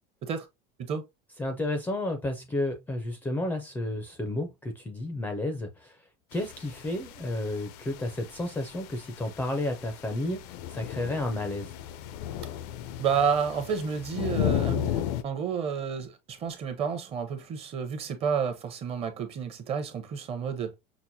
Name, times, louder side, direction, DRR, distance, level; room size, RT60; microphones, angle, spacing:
voice 1, 1.4-6.0 6.3-11.7, left 1 dB, 10° left, 0.4 m, -32 dB
sound 1, 6.3-15.2, left 11 dB, 75° left, 0.5 m, -35 dB
voice 2, 13.0-20.7, right 6 dB, 30° right, 0.8 m, -30 dB
6.0 x 2.1 x 2.6 m
cardioid pair, 160°, 20 cm